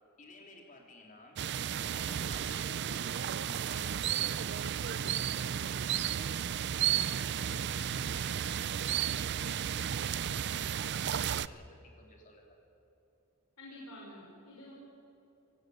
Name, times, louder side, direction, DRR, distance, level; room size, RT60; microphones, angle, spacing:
voice 1, 0.2-1.4 1.7-6.5 6.8-11.7 12.0-12.6, left 2 dB, 35° left, 0 dB, 3.3 m, -54 dB
sound 1, 1.4-11.5, right 9 dB, 50° right, 0.5 m, -33 dB
voice 2, 13.6-14.7, left 1 dB, 85° left, -3 dB, 5.2 m, -49 dB
26.5 x 18.0 x 7.8 m, 2.9 s
head